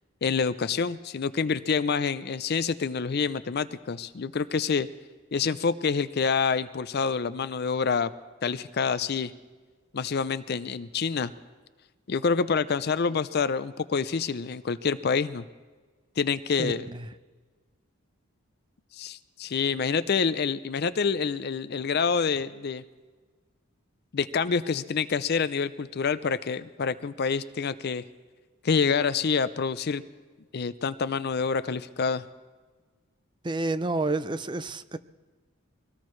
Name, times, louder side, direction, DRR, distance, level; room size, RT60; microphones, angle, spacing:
voice 1, 0.2-4.9 5.3-8.1 8.4-9.3 9.9-11.3 12.1-15.4 16.2-16.9 18.9-22.8 24.1-28.0 28.6-30.0 30.5-32.2, left 5 dB, 50° left, 14 dB, 0.5 m, -27 dB
voice 2, 16.6-17.1 33.4-35.0, right 2 dB, 20° right, 13 dB, 0.5 m, -29 dB
23.5 x 18.0 x 3.2 m, 1.4 s
head